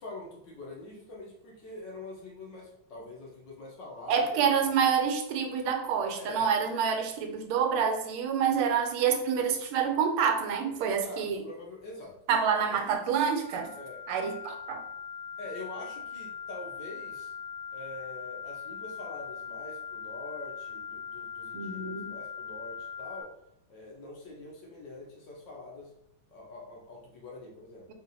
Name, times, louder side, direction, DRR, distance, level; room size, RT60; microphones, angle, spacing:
voice 1, 0.0-4.4 6.1-6.5 10.8-12.2 12.4-12.9 13.7-14.0 15.4-17.3 17.7-23.3 23.7-25.9 26.3-27.9, left 2 dB, 65° left, -1 dB, 1.4 m, -44 dB
voice 2, 4.1-11.4 12.3-13.7 14.1-14.8 21.5-22.2, right 7 dB, 90° right, 5 dB, 1.5 m, -27 dB
sound 1, 13.3-23.2, left 7 dB, 70° right, 1.2 m, -41 dB
4.2 x 2.5 x 2.6 m, 0.78 s
omnidirectional pair, 2.3 m